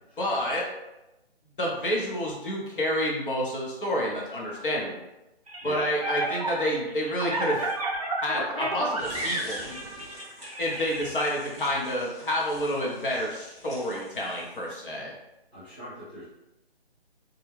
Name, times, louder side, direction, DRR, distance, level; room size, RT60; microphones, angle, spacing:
voice 1, 0.2-0.7 1.6-5.0 5.6-7.7 8.2-9.9 10.6-15.1, equal, 55° left, -3 dB, 0.8 m, -29 dB
sound 1, 5.5-11.3, right 2 dB, 35° right, 0.4 m, -32 dB
sound 2, 9.0-14.9, equal, 30° left, 0.9 m, -45 dB
voice 2, 15.5-16.2, left 1 dB, 10° left, -16 dB, 0.6 m, -42 dB
2.3 x 2.2 x 3.1 m, 0.95 s
figure-of-eight pair, 160°, 32 cm